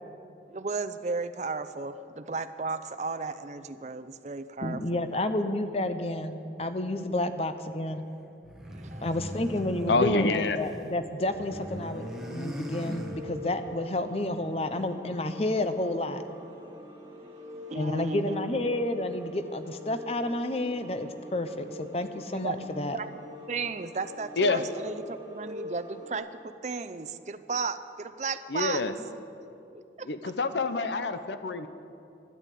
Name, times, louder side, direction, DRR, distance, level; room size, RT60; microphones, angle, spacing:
voice 1, 0.5-5.0 8.6-9.1 12.9-13.0 17.0-17.4 17.7-18.5 22.3-23.1 23.5-28.8 30.0-30.3, right 4 dB, 40° right, 10 dB, 0.5 m, -35 dB
voice 2, 4.6-8.0 9.0-16.2 17.7-23.0, left 1 dB, 35° left, 9 dB, 0.7 m, -30 dB
sound 1, 8.4-10.9 11.1-13.7, equal, ahead, 1.0 m, -40 dB
voice 3, 9.9-10.6 24.4-24.6 28.5-28.9 30.0-31.7, left 3 dB, 80° left, 11 dB, 0.7 m, -27 dB
sound 2, 11.2-26.2, left 1 dB, 20° right, 2.5 m, -45 dB
12.5 x 10.5 x 8.4 m, 2.7 s
head